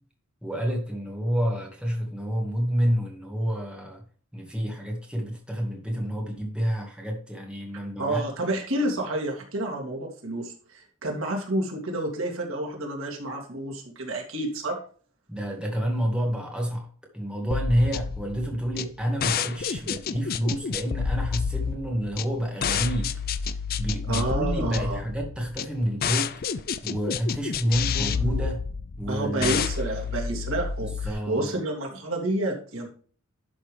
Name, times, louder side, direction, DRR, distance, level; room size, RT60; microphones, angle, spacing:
voice 1, 0.4-4.0 4.3-8.2 15.3-16.9 17.1-23.1 23.8-26.3 26.8-28.6 29.0-29.6 31.0-31.6, equal, 5° right, 0 dB, 1.9 m, -28 dB
voice 2, 8.0-14.8 24.1-25.0 27.9-28.5 29.1-32.9, right 1 dB, 80° right, 1 dB, 2.6 m, -30 dB
sound 1, 17.5-31.1, left 6 dB, 45° left, 0.5 m, -29 dB
11.5 x 5.9 x 3.3 m, 0.43 s
head